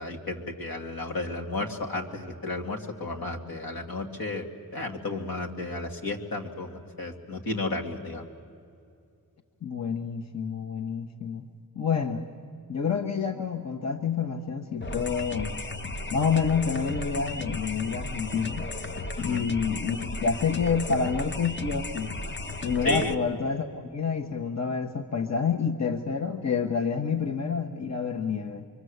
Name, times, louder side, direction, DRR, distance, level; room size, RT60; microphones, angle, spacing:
voice 1, 0.0-4.5 4.7-8.3 19.2-19.5 22.8-23.1, left 2 dB, 80° left, 2 dB, 2.5 m, -33 dB
voice 2, 9.6-11.4 11.7-12.2 12.7-15.6 16.1-18.7 19.2-22.1 22.6-23.7 23.9-28.7, left 6 dB, 50° left, 4 dB, 1.1 m, -28 dB
sound 1, 14.8-23.1, left 2 dB, 30° left, 0.9 m, -35 dB
25.0 x 24.0 x 8.0 m, 2.4 s
wide cardioid pair, 105°, 35 cm